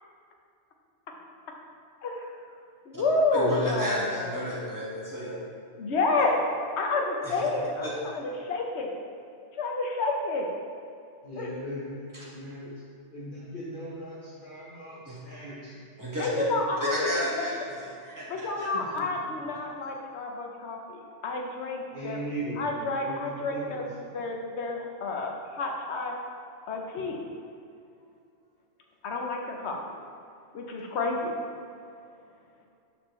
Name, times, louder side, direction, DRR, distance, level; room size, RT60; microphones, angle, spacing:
voice 1, 2.0-2.3 2.9-4.4 5.8-6.4 6.8-7.9 8.1-8.9 9.6-10.5 11.4-11.5 16.2-17.5 18.3-22.2 22.6-26.2 26.7-27.2 29.0-29.8 30.5-31.3, left 3 dB, 70° left, 1 dB, 1.1 m, -29 dB
voice 2, 3.3-5.3 7.2-7.4 7.8-8.1 12.1-12.3 15.0-15.2 16.0-16.3 16.8-18.7, equal, 15° right, -6 dB, 1.5 m, -32 dB
voice 3, 11.2-12.7 13.1-15.8 18.7-19.1 21.9-23.8, equal, 45° left, -8 dB, 1.2 m, -38 dB
11.0 x 4.5 x 3.2 m, 2.5 s
omnidirectional pair, 1.2 m